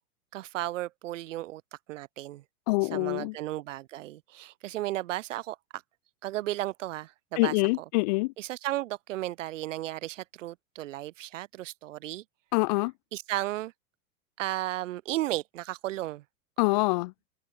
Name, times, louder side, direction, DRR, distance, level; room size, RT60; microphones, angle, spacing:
voice 1, 0.3-1.6 1.9-2.4 2.9-5.8 6.2-7.8 8.4-12.2 13.1-13.7 14.4-16.2, right 15 dB, 55° right, 1.2 m, -34 dB
voice 2, 2.7-3.3 7.4-8.3 12.5-12.9 16.6-17.1, left 25 dB, 30° left, 0.8 m, -25 dB
supercardioid pair, 170°, 44 cm